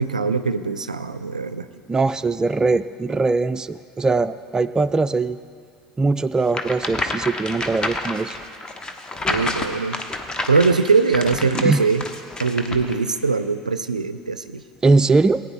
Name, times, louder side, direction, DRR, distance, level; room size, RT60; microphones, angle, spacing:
voice 1, 0.0-1.7 9.3-10.0 10.5-12.0 12.4-14.6, right 4 dB, 90° right, 11 dB, 0.4 m, -21 dB
voice 2, 1.9-5.4 6.0-8.4 11.5-11.9 14.8-15.4, right 3 dB, 15° right, 11 dB, 0.4 m, -21 dB
sound 1, 6.5-12.9, left 2 dB, 20° left, 1.0 m, -29 dB
18.0 x 9.3 x 3.5 m, 2.2 s
figure-of-eight pair, 70°, 4 cm